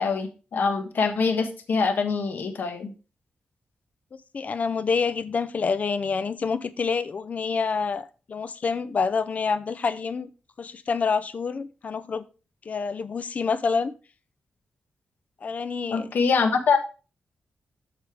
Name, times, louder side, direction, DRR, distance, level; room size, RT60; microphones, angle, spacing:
voice 1, 0.0-2.9 15.9-16.8, left 5 dB, 70° left, 1.3 m, -24 dB
voice 2, 4.3-10.3 10.6-12.2 12.7-13.9 15.4-16.1, left 5 dB, 50° left, 0.6 m, -27 dB
8.1 x 6.5 x 3.4 m
wide cardioid pair, 110°, 3 cm